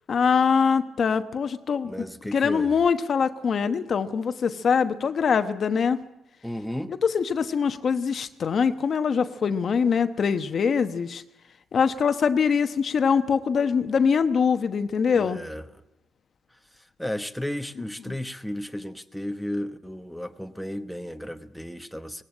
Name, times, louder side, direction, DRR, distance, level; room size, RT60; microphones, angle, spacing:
voice 1, 0.1-1.9 2.3-6.0 7.0-11.2 11.7-15.4 18.1-18.2, left 6 dB, 50° left, 9 dB, 1.0 m, -23 dB
voice 2, 1.8-2.8 6.4-6.9 15.1-15.7 16.5-22.2, left 1 dB, ahead, 7 dB, 1.1 m, -34 dB
19.0 x 16.5 x 8.8 m, 0.90 s
cardioid pair, 90°, 0 cm